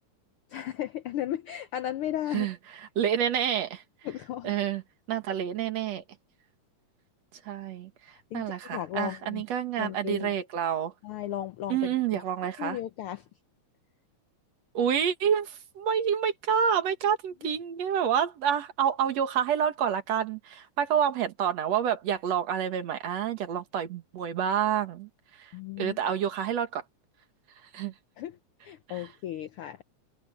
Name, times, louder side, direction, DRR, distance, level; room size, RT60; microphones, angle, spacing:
voice 1, 0.5-2.5 4.0-4.5 8.1-8.4 8.7-9.4 9.8-10.4 11.0-12.2 12.6-13.2 17.4-17.5 25.5-26.0 28.2-28.4 28.6-29.8, left 12 dB, 90° left, 1.2 m, -35 dB
voice 2, 3.0-3.8 4.4-4.8 5.1-6.0 7.5-7.9 8.3-10.9 11.7-12.8 14.7-25.1 25.4-25.5 25.8-26.8 27.7-27.9 28.9-29.1, right 8 dB, 65° right, 2.6 m, -28 dB
omnidirectional pair, 3.3 m